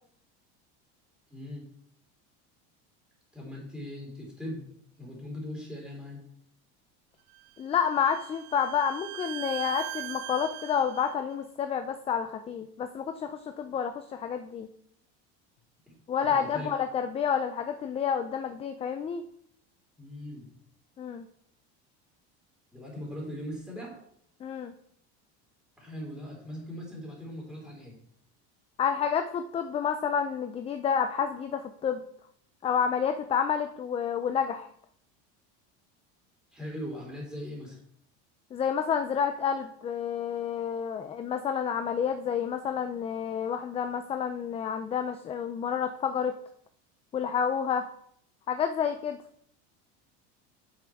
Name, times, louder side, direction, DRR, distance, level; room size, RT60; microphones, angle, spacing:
voice 1, 1.3-1.7 3.3-4.7 5.0-6.2 15.9-16.0 16.3-16.7 20.0-20.5 22.7-24.0 25.8-28.0 36.5-37.8, left 1 dB, ahead, -4 dB, 3.8 m, -40 dB
Bowed string instrument, 7.3-11.1, right 18 dB, 70° right, 0.5 m, -40 dB
voice 2, 7.6-14.7 16.1-19.2 21.0-21.3 24.4-24.7 28.8-32.0 32.6-34.7 38.5-46.3 47.1-47.9 48.5-49.2, left 7 dB, 20° left, 8 dB, 0.4 m, -29 dB
8.7 x 6.1 x 4.6 m, 0.69 s
supercardioid pair, 140°, 32 cm